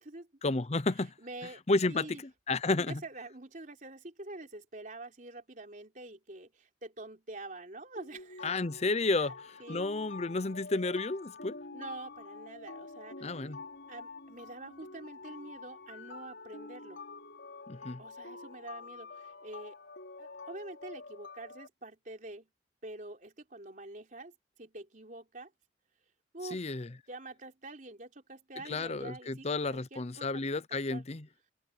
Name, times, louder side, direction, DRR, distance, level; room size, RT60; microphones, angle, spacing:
voice 1, 0.4-1.1 1.7-2.1 2.5-3.0 8.4-9.3 9.7-11.6 13.2-13.6 17.7-18.0 26.5-26.9 28.6-31.3, left 3 dB, 35° left, 0.7 m, -31 dB
voice 2, 1.2-1.6 1.9-2.2 2.8-8.5 9.2-9.3 9.6-9.8 11.7-13.4 13.9-17.0 18.0-19.8 20.2-22.5 22.8-24.3 24.6-25.5 26.3-26.7 27.1-30.4 30.7-31.1, right 2 dB, 45° right, 3.9 m, -46 dB
sound 1, 8.0-21.7, left 3 dB, 90° left, 4.6 m, -47 dB
head